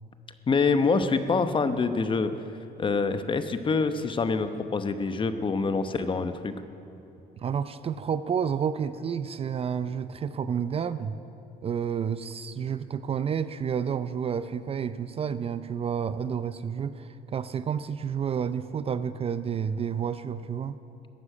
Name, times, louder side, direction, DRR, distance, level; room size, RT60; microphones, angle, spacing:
voice 1, 0.5-2.3 2.8-6.5, left 4 dB, 30° left, 10 dB, 0.9 m, -25 dB
voice 2, 7.4-11.2 11.6-20.8, right 7 dB, 35° right, 13 dB, 0.5 m, -30 dB
15.0 x 9.7 x 8.9 m, 2.9 s
cardioid pair, 110°, 17 cm